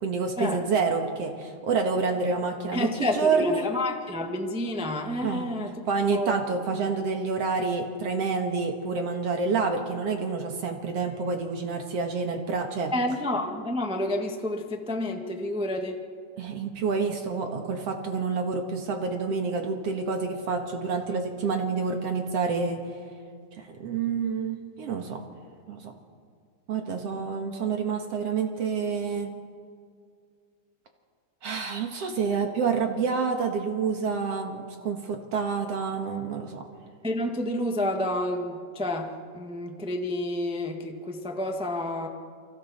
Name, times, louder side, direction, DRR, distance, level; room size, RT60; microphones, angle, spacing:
voice 1, 0.0-3.7 5.2-12.9 16.4-23.0 23.6-25.2 25.7-25.9 26.7-29.3 31.4-36.6, right 5 dB, 60° right, 4 dB, 2.3 m, -28 dB
voice 2, 2.7-5.7 6.1-6.3 12.9-16.0 37.0-42.1, left 1 dB, 5° right, 3 dB, 0.6 m, -29 dB
29.5 x 24.5 x 4.3 m, 2.1 s
omnidirectional pair, 3.4 m